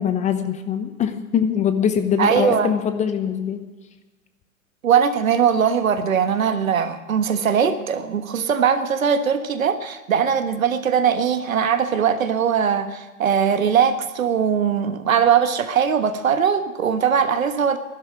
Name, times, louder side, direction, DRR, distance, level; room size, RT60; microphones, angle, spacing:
voice 1, 0.0-3.6, left 8 dB, 15° left, 9 dB, 0.8 m, -22 dB
voice 2, 2.2-2.7 4.8-17.8, right 7 dB, 70° right, 9 dB, 1.5 m, -20 dB
12.0 x 12.0 x 8.7 m, 1.2 s
figure-of-eight pair, 115°, 42 cm